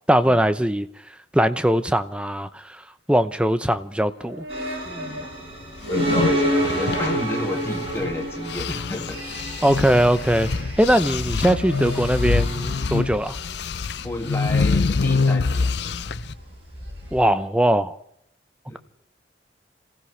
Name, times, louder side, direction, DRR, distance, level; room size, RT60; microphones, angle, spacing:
voice 1, 0.1-0.9 1.3-2.8 3.1-4.5 9.6-10.5 10.8-13.4 17.1-18.0, right 1 dB, 5° right, 0.6 m, -20 dB
sound 1, 4.1-17.5, equal, 80° right, 6.0 m, -42 dB
sound 2, 4.5-17.3, equal, 30° right, 7.4 m, -30 dB
voice 2, 4.8-5.3 5.9-9.2 14.0-16.3 18.7-18.8, left 1 dB, 15° left, 2.2 m, -31 dB
sound 3, 5.8-8.1 8.4-16.3, left 4 dB, 60° left, 0.5 m, -25 dB
28.0 x 15.5 x 3.3 m
head